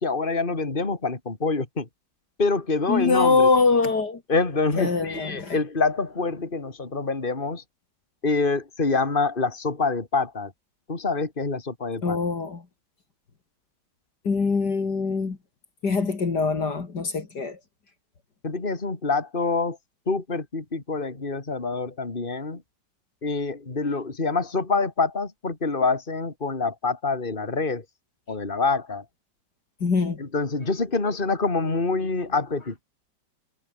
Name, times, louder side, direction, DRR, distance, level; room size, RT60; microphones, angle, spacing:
voice 1, 0.0-1.9 2.4-3.5 4.3-7.6 8.2-10.5 10.9-12.2 18.4-19.8 20.1-22.6 23.2-27.8 28.3-29.0 30.2-32.8, left 4 dB, 25° left, 3.2 m, -26 dB
voice 2, 2.9-4.2 4.8-5.6 12.0-12.6 14.2-15.4 15.8-17.6 29.8-30.2, left 4 dB, 60° left, 3.2 m, -23 dB
omnidirectional pair, 2.1 m